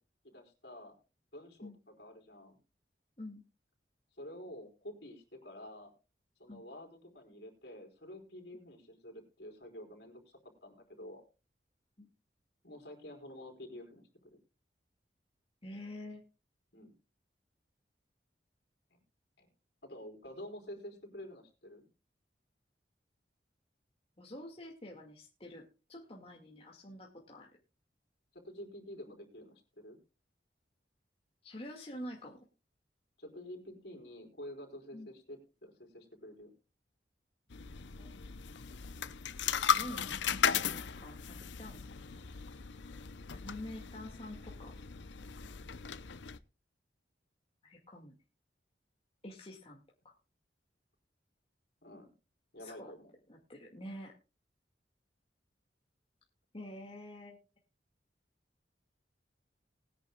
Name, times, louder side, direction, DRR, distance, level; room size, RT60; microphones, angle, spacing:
voice 1, 0.2-0.9 1.3-2.6 4.1-5.9 6.4-11.2 12.6-14.4 16.7-16.9 19.4-19.5 19.8-21.9 28.3-30.0 33.2-36.5 40.9-41.0 51.8-52.1 52.5-53.0, left 1 dB, 65° left, 3 dB, 4.7 m, -49 dB
voice 2, 15.6-16.2 24.2-27.5 31.4-32.5 34.9-35.1 38.0-38.1 39.8-40.2 40.5-41.8 43.3-44.8 47.6-48.1 49.2-50.2 52.6-52.9 53.3-54.2 56.5-57.4, left 1 dB, 35° left, -1 dB, 2.1 m, -47 dB
sound 1, 37.5-46.4, left 7 dB, 90° left, 0.7 m, -36 dB
20.5 x 10.0 x 2.3 m, 0.30 s
head